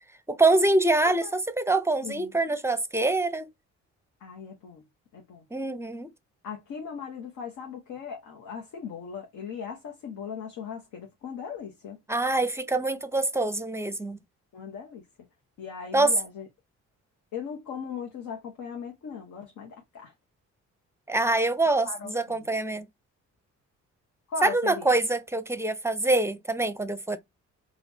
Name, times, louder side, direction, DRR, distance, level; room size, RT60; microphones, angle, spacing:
voice 1, 0.3-3.5 5.5-6.1 12.1-14.2 15.9-16.1 21.1-22.9 24.4-27.2, right 2 dB, 10° right, 0.6 m, -25 dB
voice 2, 1.0-1.4 2.0-2.3 4.2-4.8 5.1-5.4 6.4-12.0 14.5-15.0 15.6-16.5 17.3-20.1 21.8-22.5 24.3-24.9, left 6 dB, 75° left, 1.0 m, -38 dB
4.1 x 2.4 x 2.7 m
cardioid pair, 90°, 30 cm